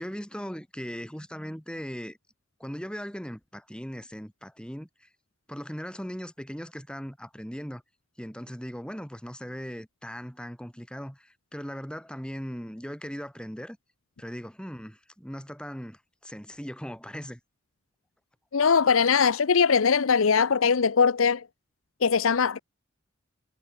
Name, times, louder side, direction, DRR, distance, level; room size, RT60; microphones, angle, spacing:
voice 1, 0.0-2.2 2.6-5.1 5.5-7.8 8.2-13.8 14.2-17.4, equal, 5° left, 4.3 m, -39 dB
voice 2, 18.5-21.5 22.0-22.6, left 6 dB, 85° left, 0.7 m, -21 dB
head